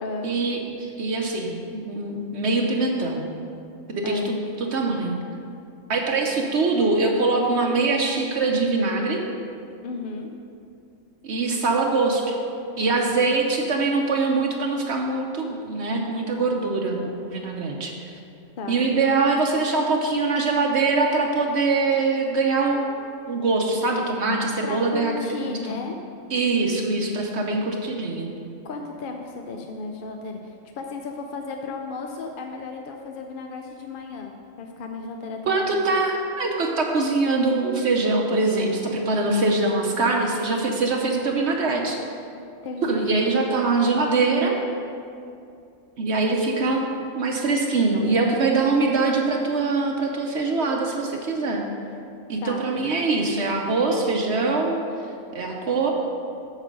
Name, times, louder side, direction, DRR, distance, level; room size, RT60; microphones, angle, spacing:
voice 1, 0.2-3.3 3.9-5.2 5.9-9.2 11.2-12.4 12.8-18.2 18.7-22.8 23.3-25.8 26.3-28.3 35.5-42.0 42.8-44.5 46.0-51.6 52.3-54.8 55.3-55.9, right 3 dB, 60° right, 1 dB, 1.0 m, -23 dB
voice 2, 9.8-10.3 18.6-18.8 24.6-25.9 28.6-34.3 34.6-35.9 42.6-43.1 52.4-52.6, left 4 dB, 55° left, 3 dB, 0.6 m, -34 dB
8.1 x 6.5 x 5.3 m, 2.5 s
omnidirectional pair, 1.4 m